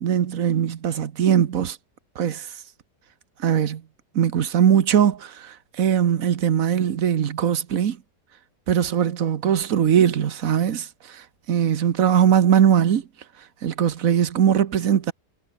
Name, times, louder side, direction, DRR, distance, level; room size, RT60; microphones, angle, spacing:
voice 1, 0.0-1.8 2.2-2.5 3.4-3.8 4.1-8.0 8.7-13.0 13.6-15.1, right 9 dB, 55° right, 1.4 m, -20 dB
omnidirectional pair, 1.9 m